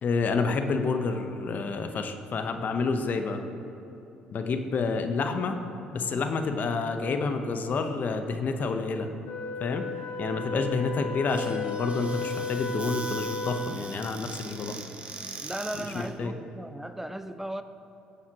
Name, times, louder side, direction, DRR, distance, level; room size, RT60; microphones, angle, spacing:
voice 1, 0.0-3.4 4.3-5.6 5.9-9.1 9.6-9.9 10.2-14.8 15.7-16.3, left 4 dB, 50° left, 6 dB, 0.9 m, -29 dB
Wind instrument woodwind instrument, 9.2-13.9, left 3 dB, 65° left, 1.8 m, -34 dB
Squeak / Cupboard open or close, 11.3-16.1, right 3 dB, 30° right, 1.1 m, -42 dB
voice 2, 15.4-17.6, right 1 dB, 10° right, 10 dB, 0.5 m, -36 dB
17.5 x 7.2 x 3.0 m, 2.9 s
hypercardioid pair, 60°, 4 cm